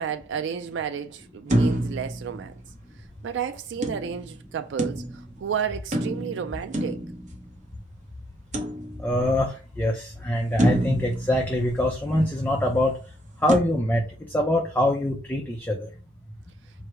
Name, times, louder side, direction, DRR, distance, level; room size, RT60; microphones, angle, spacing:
voice 1, 0.0-2.5 3.2-7.0, right 7 dB, 65° right, 0.3 m, -31 dB
sound 1, 1.5-3.1 3.8-5.4 5.9-7.8 8.5-9.4 9.9-10.0 10.6-12.3 13.5-13.6, right 1 dB, 40° right, 0.7 m, -28 dB
voice 2, 9.0-12.9 13.4-15.9, left 1 dB, 10° left, 0.5 m, -24 dB
4.7 x 2.1 x 4.7 m
head